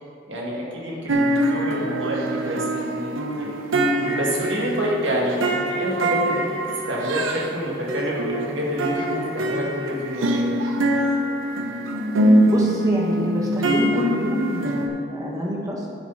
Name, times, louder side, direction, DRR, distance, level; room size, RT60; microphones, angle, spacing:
voice 1, 0.3-3.1 3.4-3.5 4.0-6.5 6.9-8.9 9.3-10.5, equal, 65° right, -3 dB, 2.1 m, -28 dB
sound 1, 1.1-7.5 7.9-14.9, right 1 dB, 80° right, 0.9 m, -23 dB
voice 2, 12.5-15.9, left 1 dB, 15° right, -2 dB, 1.4 m, -26 dB
10.0 x 7.5 x 4.1 m, 2.7 s
head